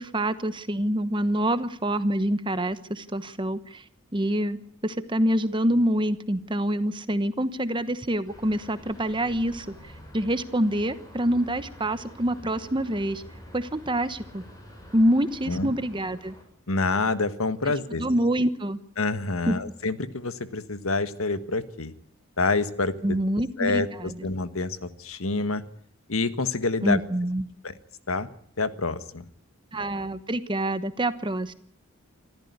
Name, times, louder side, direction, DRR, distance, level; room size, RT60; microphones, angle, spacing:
voice 1, 0.0-3.8 4.1-13.2 13.5-14.4 14.9-16.3 18.0-18.8 19.5-19.6 23.0-24.2 26.8-27.4 29.7-31.5, right 1 dB, 25° right, 12 dB, 1.1 m, -26 dB
sound 1, 8.3-16.4, left 1 dB, 15° left, 7.1 m, -47 dB
voice 2, 16.7-18.0 19.0-21.9 22.4-23.2 23.6-25.6 26.1-27.0 27.6-27.8 28.1-28.3 28.6-29.2, left 3 dB, 85° left, 12 dB, 1.6 m, -27 dB
26.0 x 14.0 x 9.6 m, 0.63 s
head